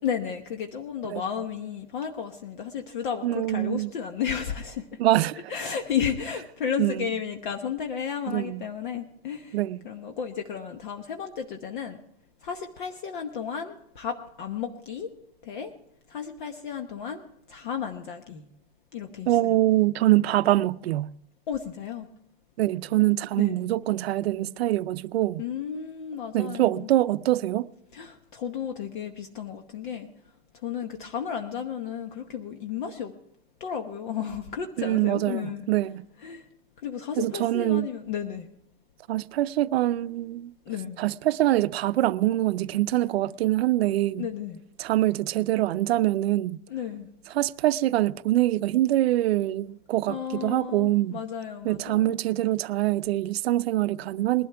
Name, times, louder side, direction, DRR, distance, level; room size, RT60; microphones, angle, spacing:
voice 1, 0.0-5.0 5.5-9.6 9.8-12.0 12.4-15.1 15.4-15.7 16.1-17.2 17.5-18.4 18.9-19.5 21.5-22.1 23.4-23.5 25.4-26.9 27.9-30.1 30.6-33.1 33.6-35.6 36.2-36.5 36.8-38.5 40.7-41.0 44.2-44.6 46.7-47.1 50.1-52.2, left 8 dB, 50° left, 1.1 m, -33 dB
voice 2, 3.2-3.9 5.0-5.4 6.8-7.1 8.3-8.6 9.5-9.8 19.3-21.1 22.6-25.4 26.3-27.7 34.8-36.1 37.2-37.9 39.1-40.5 41.0-44.3 44.8-46.6 47.3-51.2 51.6-54.5, right 15 dB, 75° right, 0.6 m, -24 dB
20.0 x 12.0 x 3.4 m
supercardioid pair, 180°, 31 cm